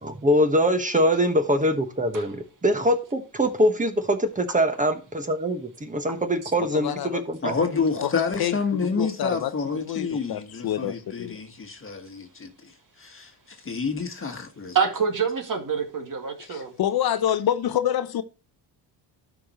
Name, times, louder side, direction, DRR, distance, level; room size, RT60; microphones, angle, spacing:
voice 1, 0.0-7.5, equal, 15° right, 1.3 m, -23 dB
voice 2, 6.6-7.2 7.6-8.5 8.8-11.4 16.4-18.2, left 11 dB, 55° left, 0.7 m, -28 dB
voice 3, 7.4-14.8, left 5 dB, 30° left, 1.5 m, -29 dB
voice 4, 14.7-16.7, right 6 dB, 45° right, 2.2 m, -26 dB
12.5 x 5.2 x 3.0 m
cardioid pair, 95°, 44 cm